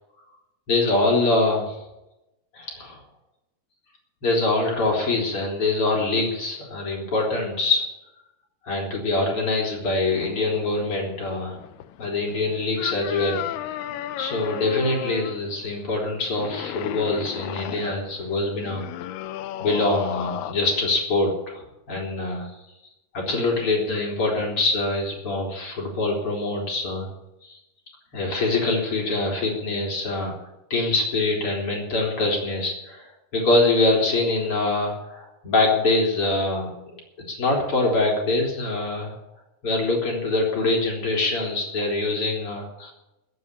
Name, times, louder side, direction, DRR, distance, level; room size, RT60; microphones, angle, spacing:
voice 1, 0.7-1.8 2.5-3.0 4.2-7.9 8.6-11.6 12.0-13.4 13.7-13.8 14.2-18.8 19.6-22.5 23.1-27.1 27.4-27.6 28.1-30.3 30.7-36.7 37.3-39.1 39.6-42.9, left 2 dB, 35° left, -1 dB, 4.2 m, -24 dB
sound 1, 10.1-20.5, left 13 dB, 80° left, 2.6 m, -35 dB
14.5 x 7.8 x 9.8 m, 0.93 s
omnidirectional pair, 4.7 m